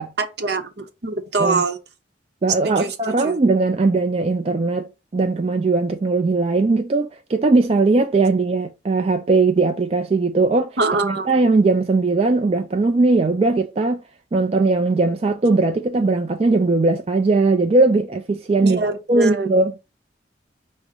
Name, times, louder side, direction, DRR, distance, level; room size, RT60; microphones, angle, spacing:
voice 1, 0.2-1.8 2.6-3.4 10.8-11.3 18.6-19.5, right 3 dB, 65° right, 0.8 m, -24 dB
voice 2, 2.4-4.9 5.1-10.8 11.0-14.0 14.3-18.8 19.1-19.7, right 3 dB, 35° right, 0.3 m, -19 dB
5.2 x 2.1 x 4.7 m
head